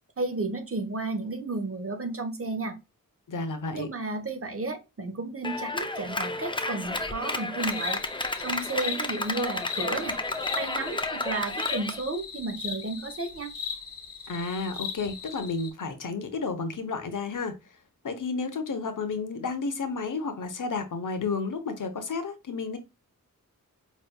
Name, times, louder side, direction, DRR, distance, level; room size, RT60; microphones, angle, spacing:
voice 1, 0.2-2.8 3.7-8.0 8.4-10.2 10.6-13.5, right 3 dB, 40° right, 1.0 m, -32 dB
voice 2, 3.3-3.9 14.3-17.5 18.0-22.8, left 4 dB, 70° left, 0.9 m, -31 dB
Clapping, 5.4-12.0, left 2 dB, 15° left, 0.5 m, -32 dB
sound 1, 7.6-15.7, left 6 dB, 90° left, 1.7 m, -38 dB
5.4 x 3.1 x 2.3 m
wide cardioid pair, 80°, 33 cm